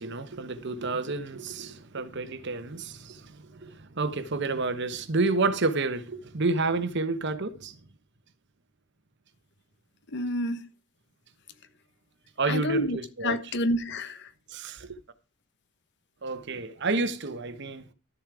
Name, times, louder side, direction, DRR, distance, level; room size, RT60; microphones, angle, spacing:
voice 1, 0.0-7.7 12.4-13.4 14.5-15.0 16.2-17.9, right 3 dB, 55° right, 1.1 m, -30 dB
voice 2, 10.1-10.6 12.5-14.3, left 1 dB, 55° left, 1.2 m, -29 dB
12.0 x 7.2 x 4.8 m
head